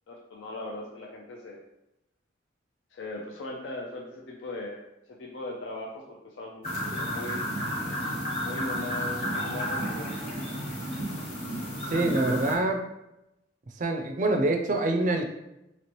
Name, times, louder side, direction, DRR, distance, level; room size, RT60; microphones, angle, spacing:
voice 1, 0.1-1.6 2.9-4.8 5.1-7.5 8.4-10.2, left 2 dB, 70° left, 0 dB, 0.4 m, -39 dB
sound 1, 6.6-12.6, equal, 30° left, 1.0 m, -32 dB
voice 2, 11.9-12.8 13.8-15.2, right 2 dB, 40° right, 5 dB, 0.4 m, -25 dB
3.0 x 2.9 x 2.9 m, 0.89 s
head